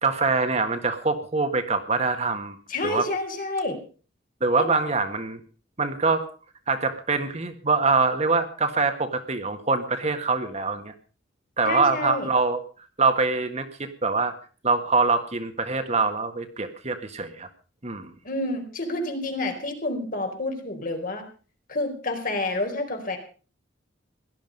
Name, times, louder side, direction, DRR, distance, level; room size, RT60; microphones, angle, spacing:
voice 1, 0.0-2.6 2.8-3.0 4.4-5.4 5.8-6.2 6.7-10.9 11.6-12.6 13.0-14.3 14.6-17.5 17.8-18.1, right 4 dB, 35° right, 8 dB, 1.6 m, -24 dB
voice 2, 2.7-3.8 4.6-4.7 11.6-12.3 18.2-21.2 21.7-23.2, left 2 dB, 45° left, 4 dB, 4.4 m, -29 dB
17.0 x 12.5 x 5.3 m, 0.39 s
head